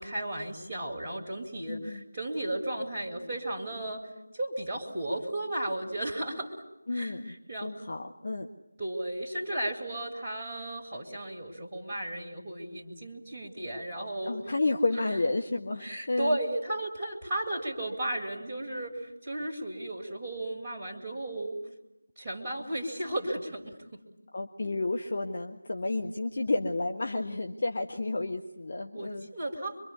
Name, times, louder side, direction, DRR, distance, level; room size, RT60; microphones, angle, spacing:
voice 1, 0.0-4.1 4.3-6.5 6.9-7.7 8.8-14.4 15.8-21.6 22.2-23.8 28.9-29.8, right 1 dB, 15° right, -4 dB, 3.4 m, -34 dB
voice 2, 1.7-2.0 6.9-7.3 7.6-8.5 14.2-16.4 24.3-29.3, left 2 dB, 45° left, 3 dB, 1.3 m, -31 dB
25.5 x 24.0 x 9.6 m, 0.89 s
figure-of-eight pair, 165°, 0 cm